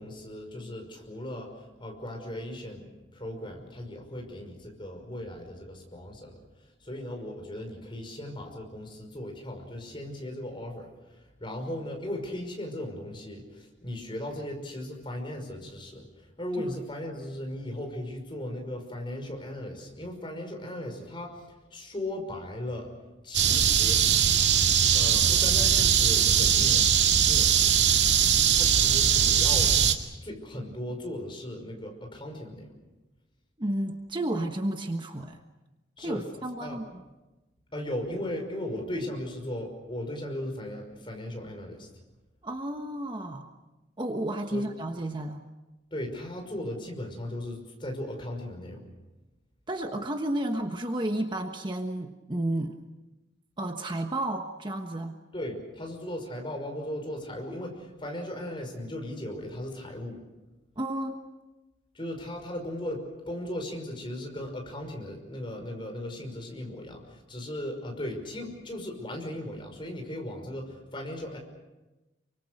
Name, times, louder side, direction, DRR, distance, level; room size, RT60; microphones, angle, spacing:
voice 1, 0.0-1.5 1.8-21.4 21.7-22.9 23.2-24.0 24.9-27.0 27.2-27.9 28.5-29.8 30.2-32.7 36.0-36.2 36.6-36.8 37.7-41.9 44.5-44.7 45.9-48.9 55.3-60.2 61.9-71.4, left 1 dB, 25° left, 3 dB, 5.7 m, -37 dB
sound 1, 23.3-29.9, right 8 dB, 65° right, 2.2 m, -21 dB
voice 2, 33.6-35.4 36.0-36.8 42.4-43.5 44.0-45.4 49.7-52.7 53.6-55.2 60.8-61.2, right 1 dB, 25° right, 4 dB, 1.3 m, -32 dB
28.5 x 24.5 x 6.6 m, 1.1 s
head